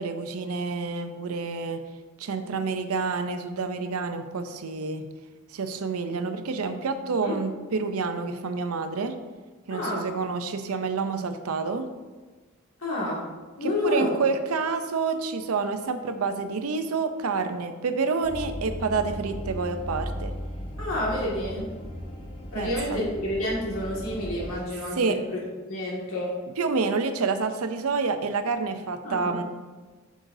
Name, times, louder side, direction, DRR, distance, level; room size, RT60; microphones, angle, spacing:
voice 1, 0.0-1.8 2.2-5.1 5.5-9.2 9.7-11.9 13.6-20.3 22.6-23.0 25.0-25.2 26.6-29.4, right 4 dB, 75° right, 8 dB, 0.5 m, -28 dB
voice 2, 9.7-10.1 12.8-13.2 13.6-14.1 20.8-21.7 22.5-25.4 25.7-26.3 29.0-29.4, left 1 dB, 65° left, -5 dB, 2.0 m, -29 dB
sound 1, 18.2-24.6, equal, 25° left, 0.8 m, -36 dB
7.8 x 6.2 x 2.7 m, 1.3 s
head